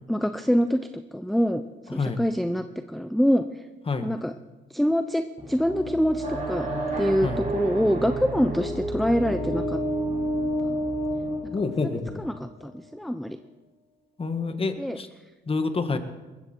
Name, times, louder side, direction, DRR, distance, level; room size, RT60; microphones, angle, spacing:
voice 1, 0.1-0.8 1.1-3.6 4.0-4.3 4.7-6.7 7.0-9.8 10.6-10.8 11.6-13.4 14.8-15.0, equal, ahead, 9 dB, 0.6 m, -25 dB
sound 1, 5.4-12.3, right 1 dB, 20° right, 5.4 m, -30 dB
sound 2, 6.2-9.1, right 3 dB, 40° right, 5.2 m, -34 dB
voice 2, 11.5-12.2 14.2-15.1 15.5-16.0, left 4 dB, 30° left, 8 dB, 1.6 m, -27 dB
20.0 x 15.0 x 4.5 m, 1.2 s
cardioid pair, 90°, 20 cm